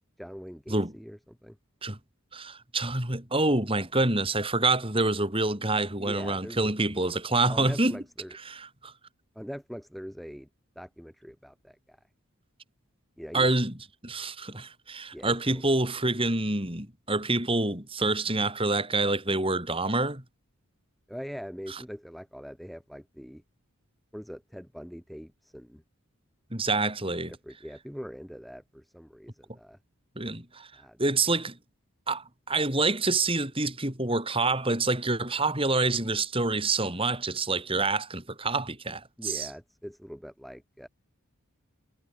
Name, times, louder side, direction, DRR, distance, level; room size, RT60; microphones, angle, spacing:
voice 1, 0.2-1.6 6.0-6.7 7.5-8.4 9.3-10.5 10.8-12.0 13.2-13.5 15.1-15.6 21.1-23.4 24.1-25.8 27.3-29.8 30.7-31.0 39.2-40.9, equal, ahead, 5.1 m, -42 dB
voice 2, 2.3-8.0 8.5-8.9 13.3-13.7 14.0-20.2 26.5-27.3 30.2-30.7 31.0-31.6 32.1-39.5, right 2 dB, 25° right, 6.4 m, -27 dB
head